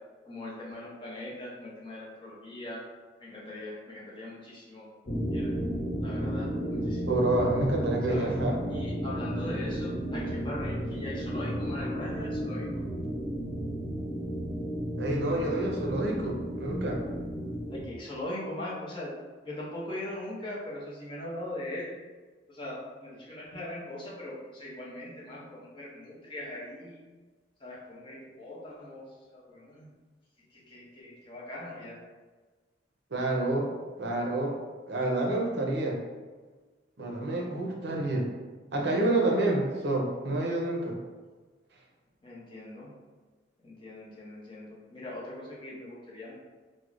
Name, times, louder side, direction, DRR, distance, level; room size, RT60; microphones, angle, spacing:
voice 1, 0.3-2.8 3.2-4.9 5.3-5.6 6.0-7.1 8.1-8.3 8.7-12.8 17.7-19.1 19.5-21.9 22.5-27.0 27.6-29.9 30.5-32.0 42.2-42.9 43.6-46.3, left 1 dB, 25° left, -5 dB, 0.7 m, -40 dB
sound 1, 5.1-17.9, equal, 60° left, 1.0 m, -33 dB
voice 2, 7.1-8.6 15.0-17.0 33.1-33.7 34.0-34.6 34.9-36.0 37.0-38.3 38.7-41.0, right 2 dB, 60° right, 0 dB, 0.6 m, -28 dB
4.6 x 2.1 x 2.4 m, 1.3 s
head